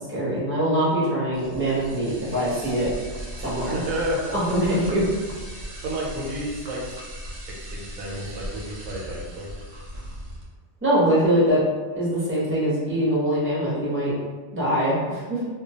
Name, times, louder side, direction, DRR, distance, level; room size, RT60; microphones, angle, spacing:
voice 1, 0.1-2.9 3.4-3.8 4.3-5.0 10.8-11.6 12.0-14.1 14.5-15.4, equal, 15° right, -8 dB, 0.6 m, -23 dB
sound 1, 1.3-10.4, right 1 dB, 60° right, 0.4 m, -38 dB
voice 2, 3.7-4.7 5.8-6.8 7.7-9.5, right 1 dB, 85° right, -3 dB, 1.0 m, -30 dB
2.3 x 2.2 x 2.7 m, 1.4 s
omnidirectional pair, 1.4 m